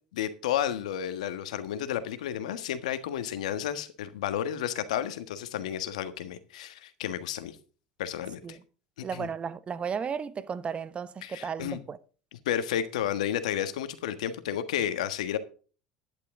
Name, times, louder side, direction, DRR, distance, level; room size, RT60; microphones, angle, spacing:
voice 1, 0.1-7.6 8.0-8.6 9.1-9.3 11.2-11.8 12.4-15.4, left 10 dB, 80° left, 1.4 m, -32 dB
voice 2, 9.0-12.0, right 6 dB, 30° right, 0.9 m, -34 dB
12.0 x 10.5 x 3.8 m
hypercardioid pair, 80°, 4 cm